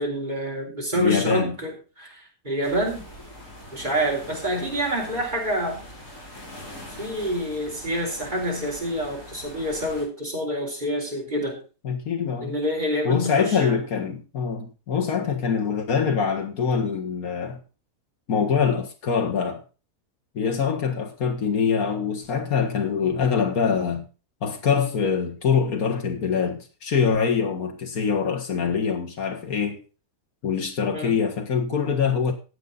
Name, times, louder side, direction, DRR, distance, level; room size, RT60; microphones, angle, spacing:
voice 1, 0.0-3.0 3.7-5.9 7.0-11.6 12.4-13.7 30.9-31.3, equal, 30° right, 4.1 m, -27 dB
voice 2, 0.9-1.5 11.8-12.5 13.1-17.6 18.3-19.6 20.3-24.1 24.4-29.8 30.4-32.3, left 6 dB, 80° left, 2.2 m, -24 dB
sound 1, 2.6-10.0, left 1 dB, 65° left, 5.8 m, -42 dB
14.0 x 8.3 x 4.0 m
omnidirectional pair, 1.5 m